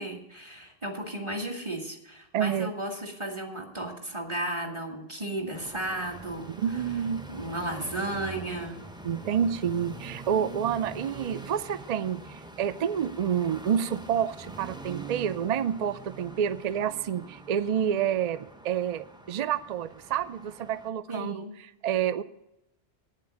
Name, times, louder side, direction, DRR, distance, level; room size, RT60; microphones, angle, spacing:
voice 1, 0.0-6.5 7.3-8.8 21.1-21.5, right 1 dB, 30° right, 0 dB, 1.8 m, -34 dB
voice 2, 2.3-2.7 6.6-7.2 9.0-21.4 21.8-22.2, right 8 dB, 50° right, 14 dB, 0.5 m, -28 dB
sound 1, 5.5-20.9, right 2 dB, 5° right, 0.5 m, -44 dB
9.0 x 7.5 x 8.7 m, 0.86 s
omnidirectional pair, 1.1 m